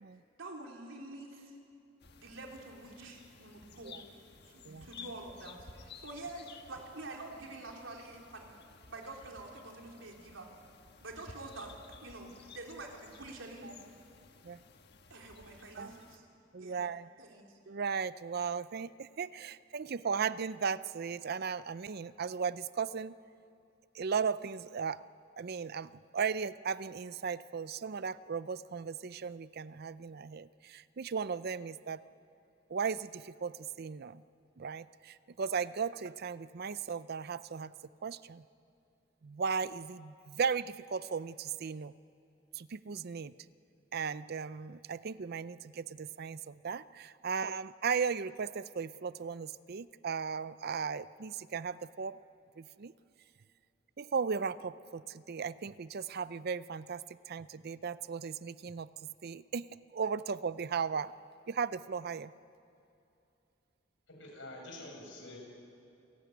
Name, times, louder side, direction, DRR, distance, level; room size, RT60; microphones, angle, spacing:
voice 1, 0.4-1.5 2.2-4.0 4.4-8.5 8.9-10.5 11.0-11.7 12.0-13.8 15.1-16.2 16.6-16.8 17.1-17.6, right 2 dB, 85° right, 0 dB, 3.8 m, -47 dB
sound 1, 2.0-16.2, left 5 dB, 60° left, 1.5 m, -55 dB
voice 2, 16.5-17.1 17.7-23.1 24.0-25.0 25.4-32.0 32.7-34.2 34.6-37.7 38.0-38.4 39.2-41.9 42.6-43.3 43.9-52.2 52.6-52.9 54.0-55.0 55.3-58.9 59.2-59.6 59.9-61.1 61.5-62.3, right 6 dB, 55° right, 16 dB, 0.5 m, -36 dB
voice 3, 64.1-65.4, left 1 dB, 75° left, 0 dB, 7.3 m, -47 dB
28.5 x 16.5 x 9.3 m, 2.8 s
head